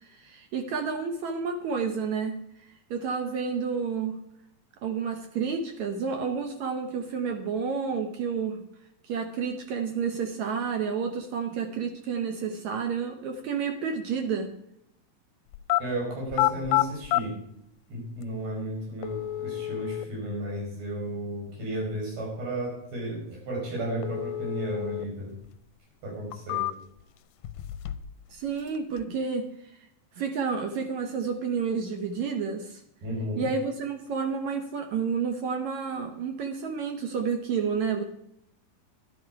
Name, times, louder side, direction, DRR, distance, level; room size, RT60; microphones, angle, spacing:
voice 1, 0.0-2.4 2.9-4.2 4.8-8.6 9.0-14.5 28.3-29.5 30.2-32.8 33.4-38.0, right 6 dB, 65° right, 5 dB, 2.0 m, -30 dB
sound 1, 15.5-15.8 16.3-17.2 18.2-18.3 19.0-20.1 24.0-25.1 25.4-25.5 26.1-27.0 27.4-28.2 28.4-29.0, left 17 dB, 80° left, 2.0 m, -29 dB
voice 2, 15.8-17.4 17.9-25.3 26.0-26.7 33.0-33.5, right 1 dB, 85° right, -1 dB, 7.1 m, -33 dB
11.5 x 11.5 x 4.7 m, 0.78 s
omnidirectional pair, 4.2 m